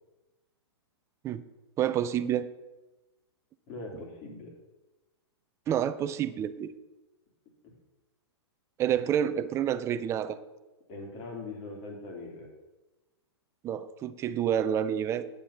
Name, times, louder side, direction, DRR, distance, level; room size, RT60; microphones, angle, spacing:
voice 1, 1.8-2.5 5.7-6.7 8.8-10.4 13.6-15.3, right 9 dB, 20° right, 13 dB, 0.5 m, -28 dB
voice 2, 3.7-4.5 10.9-12.5, left 3 dB, 35° left, 0 dB, 3.2 m, -41 dB
9.4 x 7.1 x 5.8 m, 1.1 s
hypercardioid pair, 140°, 14 cm